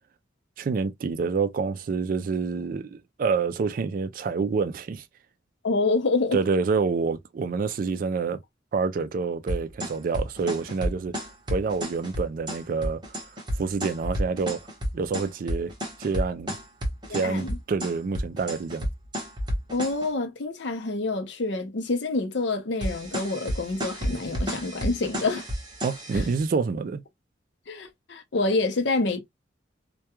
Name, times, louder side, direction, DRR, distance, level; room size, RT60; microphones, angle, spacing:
voice 1, 0.6-5.0 6.3-8.4 8.7-11.2 11.5-13.2 13.5-14.6 14.9-15.7 16.0-16.6 17.1-18.9 25.8-27.0, right 4 dB, 50° right, 0.3 m, -27 dB
voice 2, 5.6-6.4 17.1-17.6 19.7-25.5 26.1-26.3 27.7-29.2, left 3 dB, 70° left, 0.6 m, -27 dB
sound 1, 9.5-20.1 22.8-26.4, equal, 25° right, 0.8 m, -31 dB
2.2 x 2.2 x 2.8 m
head